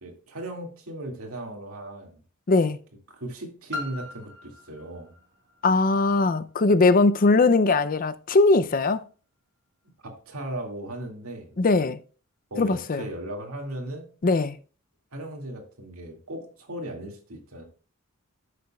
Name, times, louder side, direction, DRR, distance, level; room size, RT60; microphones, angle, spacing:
voice 1, 0.0-2.2 3.1-5.1 10.0-11.8 12.5-14.1 15.1-17.6, right 1 dB, 85° right, 2.2 m, -37 dB
voice 2, 2.5-2.8 5.6-9.0 11.6-12.0 12.6-13.0 14.2-14.6, left 3 dB, 40° left, 0.5 m, -20 dB
Piano, 3.7-9.2 9.9-10.0, left 3 dB, 55° right, 1.9 m, -43 dB
13.5 x 6.7 x 2.3 m
head